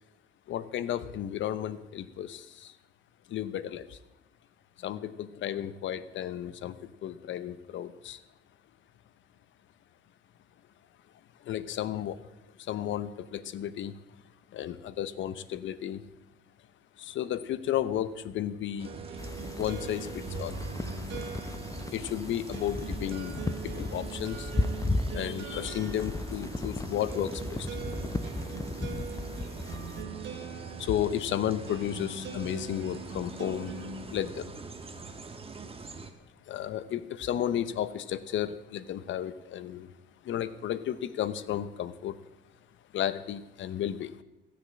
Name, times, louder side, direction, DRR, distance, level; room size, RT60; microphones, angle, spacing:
voice 1, 0.5-2.7 3.3-4.0 4.8-6.7 7.0-8.2 11.5-12.2 12.7-13.9 14.5-16.0 17.0-18.9 19.6-20.6 21.9-24.5 25.1-27.7 30.8-33.7 34.1-34.5 36.5-39.9 40.2-42.1 42.9-44.1, left 11 dB, 75° left, 15 dB, 0.9 m, -33 dB
sound 1, 18.8-36.1, right 4 dB, 30° right, 1.4 m, -44 dB
sound 2, 18.8-34.1, right 5 dB, 65° right, 2.3 m, -42 dB
sound 3, 19.2-30.0, left 2 dB, 15° left, 0.6 m, -35 dB
15.5 x 6.8 x 8.7 m, 0.98 s
cardioid pair, 90°, 20 cm